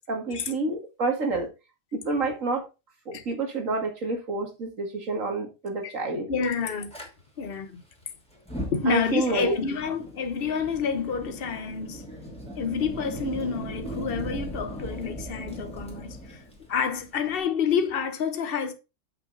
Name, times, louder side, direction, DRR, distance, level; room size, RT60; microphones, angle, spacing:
voice 1, 0.1-1.5 1.9-2.6 3.1-6.3 8.9-9.6, right 3 dB, 75° right, 2.5 m, -28 dB
voice 2, 6.3-6.9 7.4-7.8 8.7-12.0 12.6-16.4 16.7-18.7, left 6 dB, 50° left, 1.2 m, -28 dB
Fire, 6.9-7.1 8.3-17.4, equal, 5° left, 2.8 m, -38 dB
7.7 x 5.9 x 4.0 m
omnidirectional pair, 1.4 m